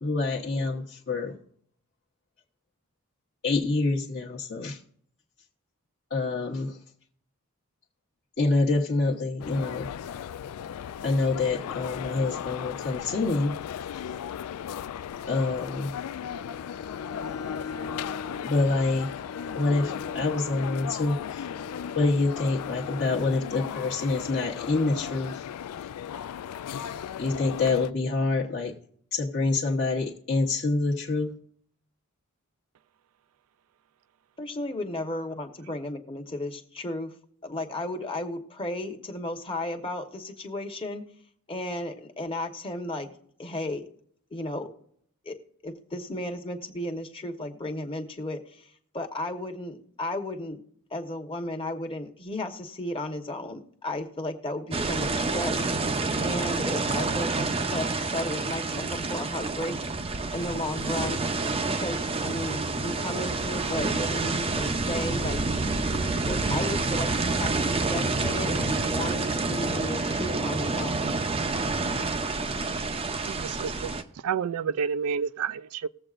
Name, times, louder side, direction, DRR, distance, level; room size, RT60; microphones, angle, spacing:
voice 1, 0.0-1.4 3.4-4.8 6.1-6.8 8.4-9.9 11.0-13.6 15.3-15.9 18.4-19.1 19.5-21.5 21.9-25.5 25.8-25.9 27.2-28.7 29.1-31.3, left 3 dB, 45° left, 1.1 m, -26 dB
sound 1, 9.4-27.9, left 9 dB, 90° left, 0.3 m, -36 dB
Bowed string instrument, 16.2-23.3, left 3 dB, 70° left, 1.1 m, -42 dB
voice 2, 34.4-37.1 37.4-41.0 41.5-43.1 43.4-43.8 44.3-44.7 45.2-45.4 45.6-50.6 50.9-59.8 60.3-61.2 61.8-65.8 66.2-71.1, left 1 dB, 25° left, 1.1 m, -34 dB
sound 2, 54.7-74.0, right 3 dB, 25° right, 0.6 m, -28 dB
voice 3, 73.2-73.9 74.2-75.9, right 6 dB, 75° right, 0.4 m, -30 dB
20.0 x 7.7 x 2.5 m
head